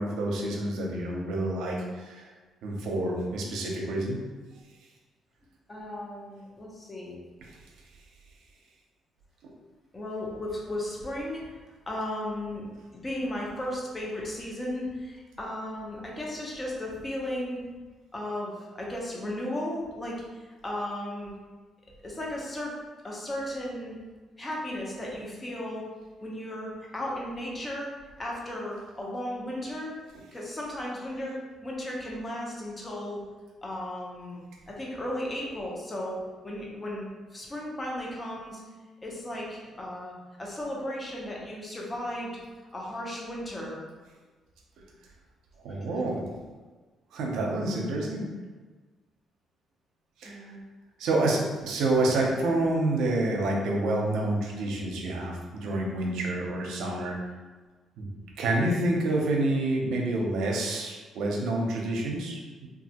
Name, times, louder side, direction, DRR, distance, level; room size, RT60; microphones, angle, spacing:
voice 1, 0.0-2.2 2.6-4.2 9.4-9.5 45.6-46.2 47.1-48.3 50.2-50.4 51.0-57.2 58.0-58.1 58.4-62.4, right 2 dB, 85° right, -1 dB, 0.6 m, -28 dB
voice 2, 5.7-7.2 9.9-11.5 11.9-12.7 12.9-17.6 18.1-21.3 22.0-22.7 23.0-24.0 24.4-25.9 26.2-27.9 28.2-29.9 30.3-31.4 31.6-33.2 33.6-36.2 36.4-37.1 37.3-38.6 39.0-40.1 40.4-42.4 42.7-43.8 46.0-46.1 50.2-50.6, left 1 dB, 25° left, -3 dB, 0.8 m, -35 dB
3.1 x 2.4 x 2.8 m, 1.3 s
cardioid pair, 90°, 0 cm